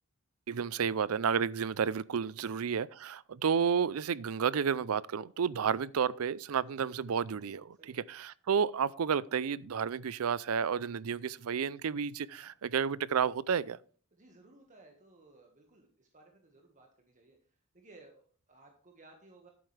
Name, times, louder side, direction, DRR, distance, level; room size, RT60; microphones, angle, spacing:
voice 1, 0.5-7.8 8.1-13.8, right 7 dB, 80° right, 0.5 m, -31 dB
voice 2, 14.1-19.5, right 2 dB, 35° right, 1.6 m, -59 dB
11.5 x 8.8 x 3.3 m
head